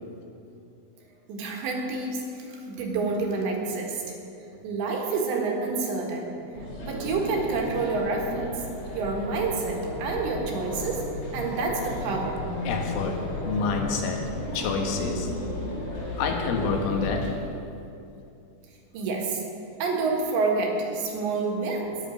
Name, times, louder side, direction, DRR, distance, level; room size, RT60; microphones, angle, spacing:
voice 1, 1.3-4.2 4.6-6.3 6.8-8.5 8.9-11.0 11.3-12.4 18.9-19.4 19.8-21.9, right 3 dB, 70° right, 0 dB, 3.7 m, -28 dB
sound 1, 6.5-17.3, left 1 dB, 40° left, 4.6 m, -34 dB
voice 2, 12.7-14.3 14.5-15.3 16.2-17.3, left 4 dB, 80° left, 2 dB, 3.9 m, -28 dB
13.0 x 10.5 x 6.4 m, 2.7 s
omnidirectional pair, 5.6 m